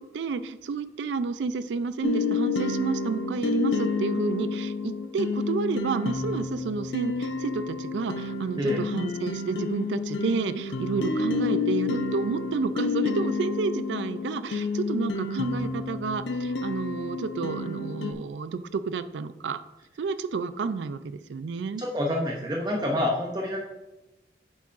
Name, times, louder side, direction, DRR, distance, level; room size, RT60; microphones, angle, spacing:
voice 1, 0.0-19.6 20.0-21.8, right 4 dB, 85° right, 13 dB, 0.4 m, -30 dB
sound 1, 2.0-18.1, left 3 dB, 85° left, 0.6 m, -29 dB
voice 2, 21.8-23.6, left 1 dB, 25° right, -1 dB, 0.6 m, -27 dB
8.5 x 7.3 x 2.5 m, 1.0 s
head